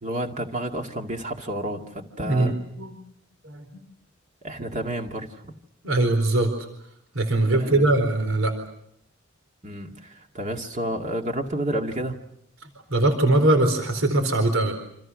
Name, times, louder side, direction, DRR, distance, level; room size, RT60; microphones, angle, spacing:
voice 1, 0.0-2.5 4.4-5.5 7.6-7.8 9.6-12.2, right 1 dB, 35° right, 3 dB, 2.2 m, -30 dB
voice 2, 2.2-3.0 3.4-3.7 5.8-6.5 7.1-8.5 12.9-14.8, right 2 dB, 75° right, 7 dB, 4.3 m, -21 dB
28.5 x 27.0 x 6.4 m, 0.74 s
head